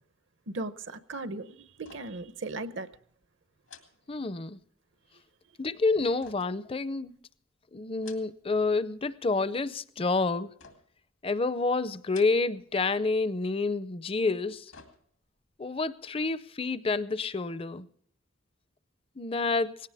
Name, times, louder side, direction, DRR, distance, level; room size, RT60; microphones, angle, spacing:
voice 1, 0.5-2.9, right 2 dB, 65° right, 0.8 m, -37 dB
Metal lid closed and opened, 1.8-2.3 2.6-2.8 3.6-4.7 6.2-7.3 7.8-8.6 8.9-9.5 10.6-11.1 12.0-12.7 13.0-13.1 14.2-15.4 15.8-15.9, left 6 dB, 85° left, 2.4 m, -55 dB
voice 2, 4.1-4.6 5.6-7.1 7.7-10.5 11.2-14.7 15.6-17.9 19.2-19.7, left 3 dB, 25° left, 0.5 m, -28 dB
19.0 x 17.0 x 3.5 m
head